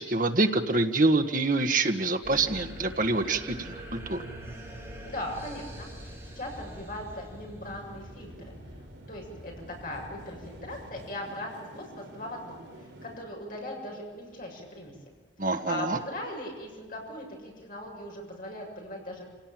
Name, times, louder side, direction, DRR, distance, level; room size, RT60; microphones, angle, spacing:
voice 1, 0.0-4.2 15.4-16.0, right 2 dB, 45° right, 6 dB, 1.5 m, -26 dB
sound 1, 2.2-11.0, equal, 10° right, 7.0 m, -44 dB
voice 2, 5.0-8.5 9.1-9.5 9.8-14.9 15.4-19.3, left 1 dB, 50° left, 0 dB, 7.3 m, -39 dB
sound 2, 7.6-13.2, right 1 dB, 80° right, 4.9 m, -50 dB
26.5 x 17.5 x 9.1 m, 1.3 s
head